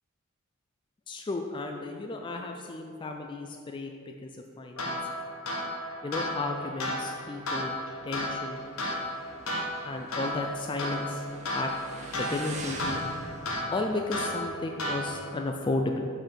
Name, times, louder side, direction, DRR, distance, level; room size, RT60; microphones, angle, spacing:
voice 1, 1.1-4.3 4.6-5.0 6.0-7.8 8.0-8.7 9.8-11.2 11.5-11.7 12.1-13.0 13.7-16.1, left 2 dB, 25° left, 3 dB, 0.3 m, -33 dB
sound 1, 4.8-15.4, left 1 dB, 85° left, 1.2 m, -34 dB
Motorcycle, 7.0-15.3, right 2 dB, 35° right, 0.7 m, -45 dB
6.4 x 4.1 x 6.3 m, 2.3 s
head